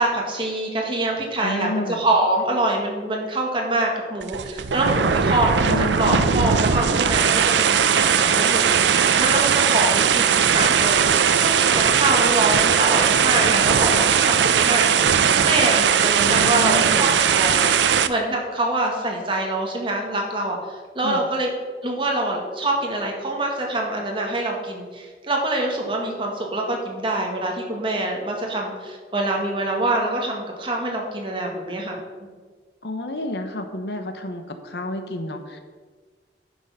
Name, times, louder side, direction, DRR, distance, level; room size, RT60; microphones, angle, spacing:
voice 1, 0.0-5.6 6.0-21.5 21.8-32.0, right 1 dB, 30° right, 0 dB, 1.8 m, -25 dB
voice 2, 1.4-2.0 5.6-6.5 16.2-17.2 21.0-21.3 32.8-35.6, left 1 dB, 75° left, 7 dB, 1.0 m, -30 dB
sound 1, 4.2-18.1, right 7 dB, 85° right, 0.5 m, -19 dB
11.0 x 6.3 x 5.6 m, 1.5 s
head